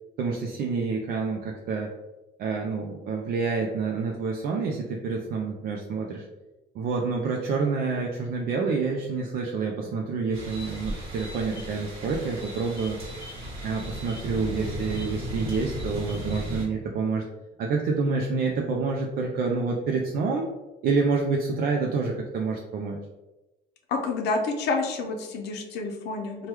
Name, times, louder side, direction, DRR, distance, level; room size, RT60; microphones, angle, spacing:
voice 1, 0.2-1.9 2.4-6.3 6.7-13.0 13.6-17.3 17.6-20.5 20.8-23.0, right 4 dB, 60° right, 0 dB, 0.4 m, -28 dB
sound 1, 10.3-16.7, equal, 35° right, 1.3 m, -35 dB
voice 2, 23.9-26.5, left 3 dB, 80° left, 3 dB, 0.6 m, -29 dB
3.0 x 2.2 x 3.3 m, 1.0 s
cardioid pair, 110°, 17 cm